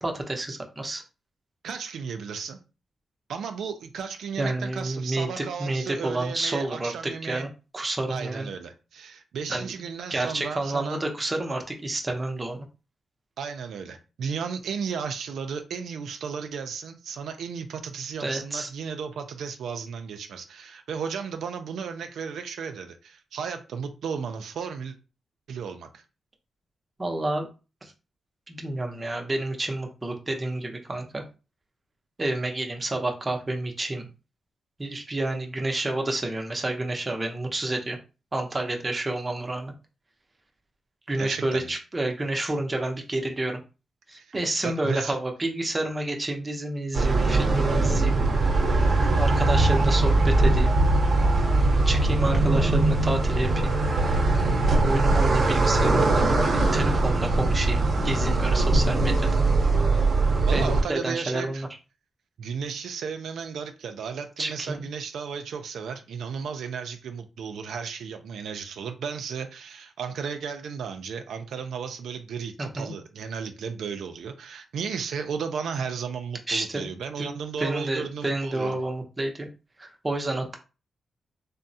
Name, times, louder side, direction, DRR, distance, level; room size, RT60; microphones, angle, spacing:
voice 1, 0.0-1.0 4.4-7.5 7.7-8.5 9.5-9.7 10.1-12.7 18.2-18.7 27.0-27.5 27.8-27.9 28.5-31.2 32.2-34.1 34.8-38.0 38.3-39.7 41.1-43.6 44.1-48.2 49.2-50.8 51.8-53.8 54.8-59.3 60.5-61.7 64.4-64.9 72.8-72.9 76.5-76.9 77.2-77.3 77.6-79.5 79.8-80.6, right 2 dB, 20° right, 0.6 m, -29 dB
voice 2, 1.6-2.6 3.3-7.5 8.1-11.0 13.4-25.0 25.5-26.0 41.2-41.7 44.2-44.4 44.6-45.1 60.5-61.6 62.4-78.8, right 6 dB, 85° right, 0.3 m, -34 dB
sound 1, 46.9-60.8, right 2 dB, 55° right, 0.7 m, -21 dB
3.4 x 2.0 x 2.6 m
cardioid pair, 115°, 0 cm